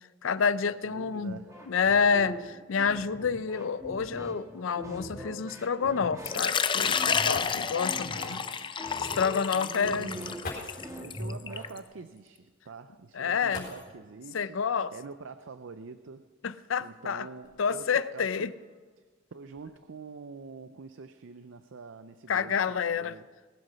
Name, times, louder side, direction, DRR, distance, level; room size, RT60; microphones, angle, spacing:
voice 1, 0.2-1.4 1.7-8.4 8.8-10.1 13.2-13.7 14.3-14.9 16.4-17.3 17.6-18.5 22.3-23.1, left 6 dB, 85° left, 16 dB, 0.5 m, -28 dB
voice 2, 0.8-1.6 7.6-8.5 9.4-14.6 14.9-16.3 16.8-18.5 19.0-19.1 19.3-23.3, right 4 dB, 75° right, 11 dB, 0.5 m, -45 dB
sound 1, 1.2-11.8, equal, 15° right, 1.7 m, -42 dB
Water / Liquid, 6.3-11.8, left 6 dB, 25° left, 0.4 m, -30 dB
sound 2, 7.3-7.9 9.2-9.3 10.4-11.0 13.5-14.2 15.6-15.7 16.4-17.9 18.6-18.9 19.3-19.7, left 2 dB, 50° left, 4.3 m, -43 dB
20.0 x 8.0 x 5.6 m, 1.4 s
head